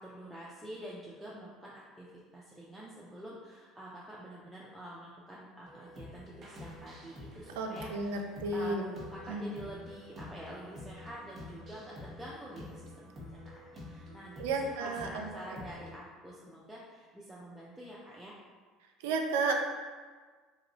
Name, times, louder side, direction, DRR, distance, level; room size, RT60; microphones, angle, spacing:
voice 1, 0.0-14.5 14.8-18.3, right 1 dB, 10° right, -6 dB, 0.5 m, -47 dB
sound 1, 5.7-15.9, left 2 dB, 35° right, 1.0 m, -48 dB
voice 2, 7.6-8.9 9.3-9.5 14.4-15.3 19.0-19.5, right 3 dB, 75° right, 3 dB, 0.3 m, -32 dB
3.0 x 2.5 x 2.8 m, 1.5 s
hypercardioid pair, 65°, 0 cm